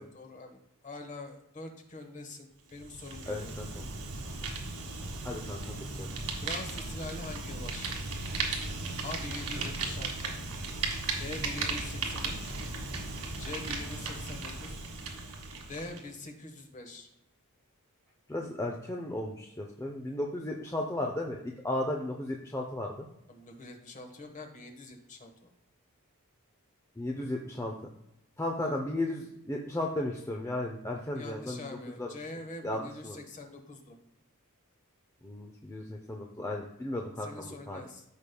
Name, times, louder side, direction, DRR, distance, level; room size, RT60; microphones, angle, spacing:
voice 1, 0.0-3.5 6.4-7.9 9.0-10.4 11.2-12.6 13.4-14.7 15.7-17.1 23.3-25.5 28.6-28.8 31.1-34.0 37.2-38.0, left 2 dB, 35° left, 3 dB, 1.2 m, -44 dB
Fire, 2.7-16.1, right 3 dB, 90° right, 1.6 m, -36 dB
voice 2, 3.3-3.9 5.2-6.1 18.3-23.1 27.0-27.7 28.4-31.7 32.0-32.1 32.6-33.2 35.2-37.8, left 1 dB, 15° left, 1 dB, 0.6 m, -35 dB
14.0 x 5.2 x 2.3 m, 0.82 s
head